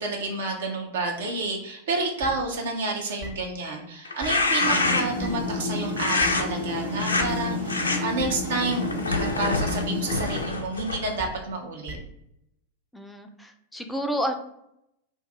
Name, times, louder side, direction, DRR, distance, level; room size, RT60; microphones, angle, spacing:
voice 1, 0.0-12.0, right 3 dB, 60° right, 2 dB, 0.5 m, -30 dB
sound 1, 2.2-2.3 3.2-3.3 4.2-4.3 5.2-5.3 6.2-6.3 7.2-7.3 8.2-8.3 9.2-9.3 10.2-10.3 11.2-11.3 11.9-12.0, right 1 dB, 30° right, 0.9 m, -37 dB
sound 2, 4.1-5.3 6.0-6.4 7.0-7.3 7.7-8.0 8.6-11.2, left 3 dB, 75° left, 0.4 m, -26 dB
sound 3, 4.6-10.4, left 2 dB, 90° right, 0.8 m, -30 dB
voice 2, 12.9-14.3, equal, 5° left, 5 dB, 0.4 m, -30 dB
2.5 x 2.3 x 3.8 m, 0.79 s
figure-of-eight pair, 90°, 0 cm